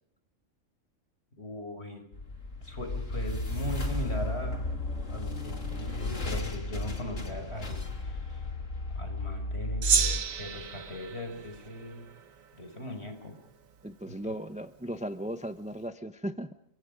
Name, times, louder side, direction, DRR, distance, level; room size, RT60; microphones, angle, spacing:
voice 1, 1.4-2.0 2.6-4.6 5.1-8.5 8.9-12.1 12.6-13.3 14.1-14.2, left 1 dB, 50° left, 6 dB, 5.8 m, -39 dB
sound 1, 2.1-11.3, left 2 dB, 70° left, 3.2 m, -34 dB
Gong, 9.8-12.5, right 7 dB, 85° right, 1.7 m, -31 dB
voice 2, 13.8-16.5, equal, 5° right, 10 dB, 0.8 m, -36 dB
30.0 x 25.0 x 5.3 m, 0.69 s
omnidirectional pair, 1.4 m